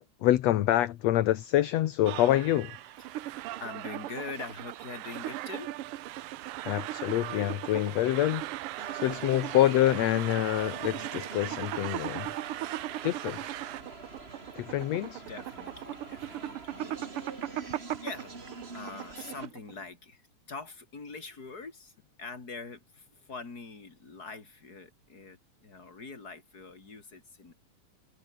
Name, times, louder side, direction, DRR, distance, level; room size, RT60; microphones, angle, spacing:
voice 1, 0.0-2.8 6.7-8.5 8.9-12.3 13.0-13.4 14.6-15.2, left 14 dB, 70° left, 2.1 m, -26 dB
sound 1, 2.0-13.8, right 17 dB, 85° right, 2.2 m, -40 dB
voice 2, 3.0-5.7 15.2-27.5, left 4 dB, 30° left, 4.2 m, -44 dB
sound 2, 3.0-19.8, right 13 dB, 70° right, 1.4 m, -39 dB
sound 3, 8.8-19.5, right 3 dB, 20° right, 2.5 m, -46 dB
omnidirectional pair, 3.4 m